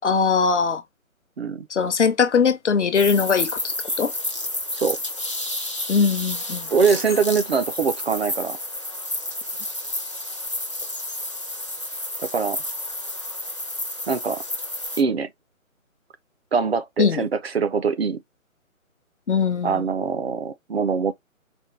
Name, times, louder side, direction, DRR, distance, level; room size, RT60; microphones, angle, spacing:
voice 1, 0.0-0.8 1.7-4.1 5.9-6.7 17.0-17.2 19.3-19.8, left 5 dB, 55° left, 0.7 m, -21 dB
sound 1, 2.9-15.0, left 1 dB, 25° left, 0.5 m, -30 dB
voice 2, 6.7-8.6 12.2-12.6 14.1-14.4 15.0-15.3 16.5-18.2 19.6-21.1, right 5 dB, 50° right, 0.5 m, -23 dB
4.3 x 2.2 x 3.1 m
figure-of-eight pair, 155°, 42 cm